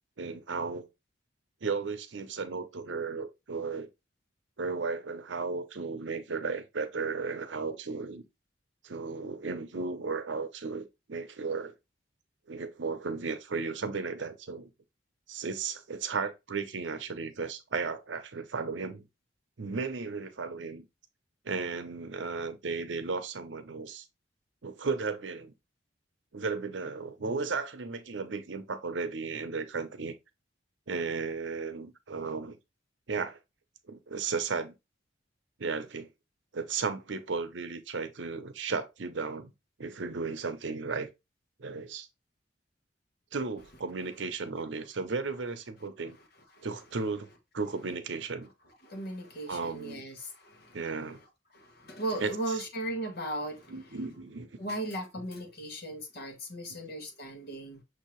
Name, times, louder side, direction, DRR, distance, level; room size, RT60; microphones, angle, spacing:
voice 1, 0.2-0.9 1.6-3.9 4.6-8.2 8.8-11.7 12.5-14.7 15.3-19.1 19.6-20.9 21.4-24.0 24.6-25.5 26.3-30.1 30.9-32.6 33.1-33.4 33.9-34.7 35.6-36.1 36.5-39.5 39.8-41.1 41.6-42.1 43.3-46.2 46.6-47.3 47.5-48.5 49.5-50.0 50.7-51.2 52.2-52.6 53.7-54.5, right 4 dB, 80° right, 0.7 m, -35 dB
voice 2, 48.8-50.8 51.5-53.8 54.6-57.8, right 1 dB, 60° left, 1.3 m, -37 dB
6.2 x 2.8 x 3.1 m
head